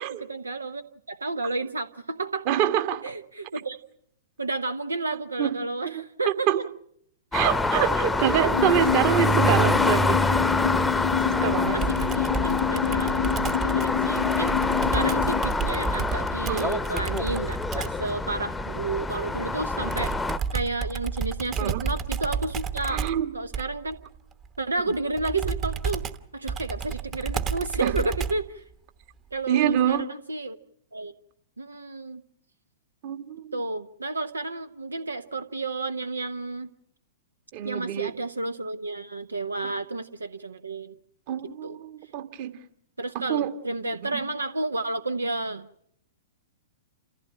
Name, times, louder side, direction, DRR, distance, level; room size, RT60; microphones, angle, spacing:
voice 1, 0.2-2.5 3.0-3.8 4.4-6.5 8.0-8.3 11.7-14.6 14.9-20.1 20.5-23.0 23.3-24.0 24.6-26.0 26.3-28.6 29.3-30.6 30.9-31.1 31.6-32.2 33.5-36.7 37.6-41.0 41.6-41.8 43.0-45.7, right 2 dB, 80° right, 11 dB, 0.8 m, -31 dB
voice 2, 2.4-3.1 5.4-5.6 5.8-6.0 6.5-6.6 7.3-10.2 11.2-11.8 16.5-16.8 19.8-19.9 21.6-21.9 22.9-23.3 27.8-27.9 29.5-30.1 33.0-33.6 37.5-38.1 39.6-39.7 41.3-42.6 43.1-43.5 43.8-44.2, right 10 dB, 45° right, 9 dB, 1.6 m, -26 dB
sound 1, 7.3-20.4, left 2 dB, 5° left, 0.8 m, -26 dB
sound 2, 8.5-15.4, left 9 dB, 60° left, 0.8 m, -27 dB
Computer keyboard, 11.8-18.1 19.9-28.6, right 6 dB, 25° right, 1.1 m, -32 dB
28.5 x 15.0 x 8.8 m, 0.71 s
figure-of-eight pair, 105°, 0 cm